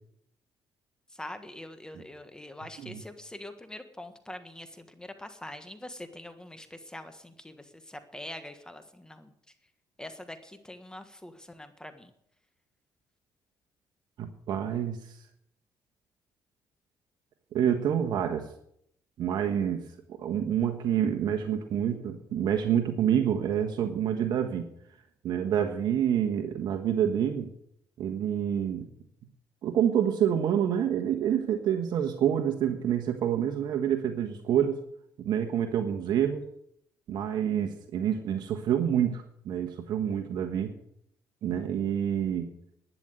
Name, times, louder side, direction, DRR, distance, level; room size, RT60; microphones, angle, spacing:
voice 1, 1.1-9.3 10.0-12.1, left 1 dB, 10° left, 8 dB, 1.5 m, -44 dB
voice 2, 14.2-15.2 17.5-18.5 19.2-24.7 25.2-27.5 28.0-28.9 29.6-34.8 35.2-36.4 37.1-40.7 41.4-42.5, right 9 dB, 70° right, 5 dB, 1.4 m, -27 dB
11.5 x 10.0 x 8.1 m, 0.74 s
cardioid pair, 90°, 8 cm